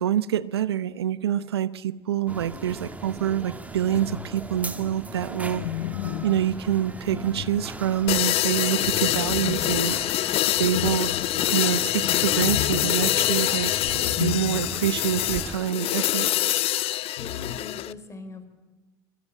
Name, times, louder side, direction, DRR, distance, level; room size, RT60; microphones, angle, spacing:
voice 1, 0.0-5.6 6.2-10.1 10.6-11.1 11.5-13.7 14.2-16.6, right 10 dB, 85° right, 16 dB, 0.8 m, -26 dB
sound 1, 2.3-15.6, right 2 dB, 10° right, 2.1 m, -39 dB
sound 2, 3.9-4.6 5.4-8.1 8.8-15.0 15.3-15.4 17.2-17.6, left 13 dB, 75° left, 1.2 m, -35 dB
sound 3, 8.1-17.9, left 15 dB, 50° left, 0.8 m, -25 dB
voice 2, 17.2-18.5, left 3 dB, 20° left, 9 dB, 4.9 m, -41 dB
26.0 x 21.5 x 9.0 m, 1.2 s
hypercardioid pair, 80°, 13 cm